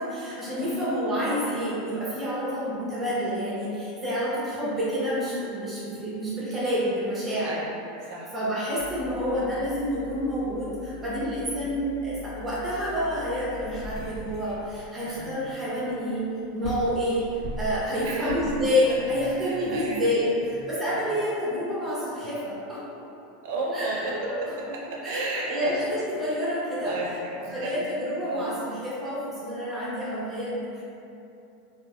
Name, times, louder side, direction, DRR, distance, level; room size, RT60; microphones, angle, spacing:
voice 1, 0.0-7.6 8.3-16.2 16.5-22.8 23.7-24.4 25.0-26.9 27.5-30.8, equal, 20° right, -8 dB, 0.6 m, -28 dB
voice 2, 8.0-8.3 15.0-15.6 18.0-18.5 18.9-20.3 20.9-21.1 23.4-25.7 26.8-27.8 28.2-28.5, right 2 dB, 70° right, -3 dB, 0.5 m, -34 dB
sound 1, 8.8-21.0, left 1 dB, 65° left, 1.1 m, -42 dB
2.4 x 2.3 x 2.3 m, 2.7 s
supercardioid pair, 125°, 0 cm